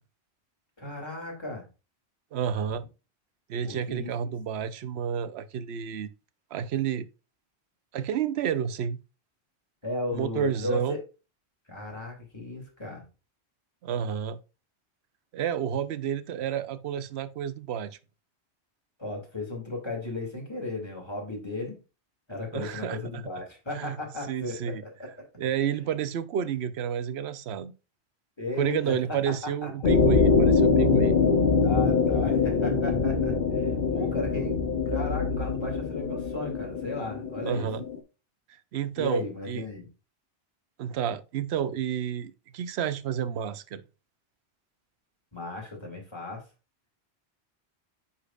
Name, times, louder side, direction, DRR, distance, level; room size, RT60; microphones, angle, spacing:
voice 1, 0.8-1.6 3.6-4.3 9.8-11.0 11.7-13.0 19.0-21.8 22.3-25.3 28.4-29.3 29.6-29.7 31.0-31.1 31.6-37.7 39.0-39.9 45.3-46.4, left 2 dB, 25° left, 2.4 m, -35 dB
voice 2, 2.3-2.8 3.5-6.1 6.5-7.1 7.9-9.0 10.1-11.0 13.8-14.4 15.3-18.0 22.5-23.0 23.7-24.0 24.3-24.8 25.4-27.7 28.6-31.1 37.4-37.8 38.7-39.6 40.8-43.8, right 9 dB, 75° right, 0.9 m, -30 dB
sound 1, 29.8-38.0, left 4 dB, 50° left, 1.0 m, -24 dB
9.7 x 4.3 x 2.4 m
omnidirectional pair, 1.1 m